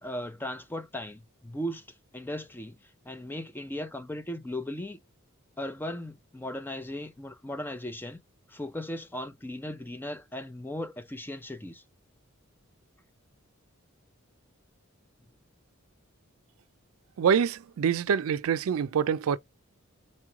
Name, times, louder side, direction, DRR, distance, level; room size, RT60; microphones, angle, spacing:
voice 1, 0.0-1.8 2.1-2.8 3.1-5.0 5.6-8.2 8.5-11.8, left 1 dB, 10° left, 0.5 m, -37 dB
voice 2, 17.2-19.4, right 7 dB, 85° right, 0.4 m, -25 dB
4.3 x 3.0 x 3.6 m
head